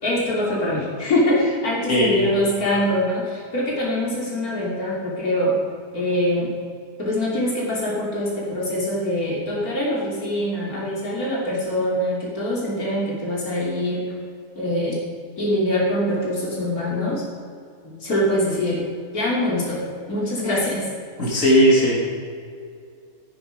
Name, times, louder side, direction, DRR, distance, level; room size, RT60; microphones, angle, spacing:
voice 1, 0.0-5.6 5.9-6.5 7.0-14.1 14.5-15.0 15.4-17.2 17.8-18.8 19.1-19.8 20.1-20.8, left 1 dB, 80° left, -5 dB, 3.4 m, -23 dB
voice 2, 1.9-2.3 21.2-22.0, equal, 60° left, -5 dB, 3.3 m, -17 dB
13.5 x 10.5 x 5.1 m, 2.2 s
omnidirectional pair, 1.5 m